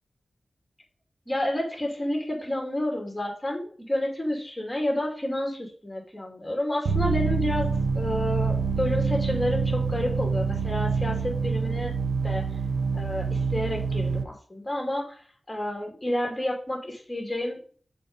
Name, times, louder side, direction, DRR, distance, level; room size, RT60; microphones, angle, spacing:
voice 1, 1.3-7.7 7.9-11.9 12.2-12.6 12.9-15.2 15.5-17.6, left 1 dB, 15° left, 1 dB, 2.8 m, -30 dB
sound 1, 6.9-14.2, right 5 dB, 85° right, 0.7 m, -26 dB
6.7 x 5.1 x 5.5 m, 0.43 s
wide cardioid pair, 105°, 0 cm